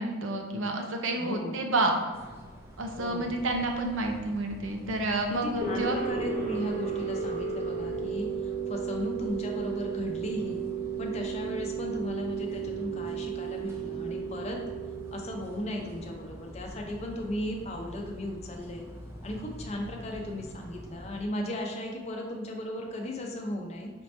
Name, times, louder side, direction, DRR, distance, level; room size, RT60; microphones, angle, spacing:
voice 1, 0.0-1.9 2.8-6.0, right 2 dB, 70° right, 3 dB, 0.6 m, -29 dB
voice 2, 1.2-1.7 3.0-3.3 5.3-10.6 11.0-14.6 15.1-18.9 19.2-23.9, left 1 dB, 30° left, 1 dB, 0.5 m, -36 dB
sound 1, 2.1-21.2, equal, 10° right, 0.6 m, -47 dB
sound 2, 5.6-16.5, right 6 dB, 45° right, 0.9 m, -34 dB
5.1 x 2.9 x 3.2 m, 1.4 s
head